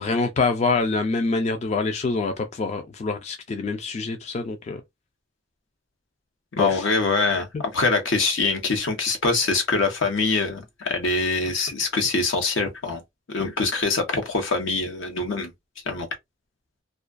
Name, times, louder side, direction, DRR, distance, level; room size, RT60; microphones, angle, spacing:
voice 1, 0.0-4.8 6.6-6.8, left 3 dB, 35° left, 0.3 m, -25 dB
voice 2, 6.5-13.0 13.3-15.5 15.9-16.1, left 3 dB, 80° left, 0.8 m, -24 dB
2.3 x 2.2 x 2.4 m
head